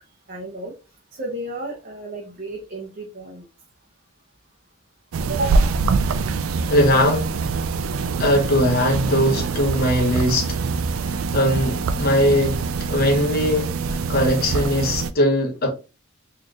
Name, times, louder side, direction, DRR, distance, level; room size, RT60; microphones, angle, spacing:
voice 1, 0.3-0.7 1.1-3.4 5.3-5.7, right 2 dB, 45° right, 0.7 m, -31 dB
sound 1, 5.1-15.1, right 4 dB, 75° right, 0.3 m, -24 dB
voice 2, 6.7-7.3 8.2-10.6 11.0-12.6 12.9-15.7, left 1 dB, 45° left, 1.1 m, -20 dB
4.1 x 3.1 x 2.4 m
head